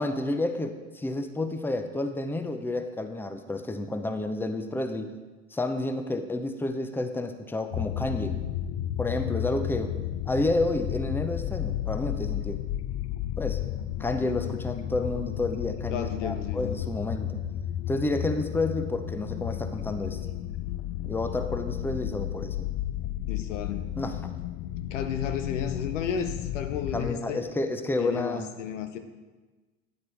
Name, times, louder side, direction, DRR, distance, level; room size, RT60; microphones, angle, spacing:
voice 1, 0.0-5.1 5.5-8.4 9.0-10.0 10.3-12.6 13.4-13.6 14.0-17.4 17.9-20.2 21.0-22.7 24.0-24.3 26.9-28.5, left 2 dB, 5° left, 8 dB, 0.6 m, -30 dB
sound 1, 7.7-27.1, left 12 dB, 45° left, 0.4 m, -33 dB
voice 2, 15.9-16.8 23.3-23.9 24.9-27.4 28.0-29.0, left 7 dB, 90° left, 8 dB, 0.7 m, -33 dB
9.2 x 8.0 x 3.3 m, 1.3 s
hypercardioid pair, 75°, 36 cm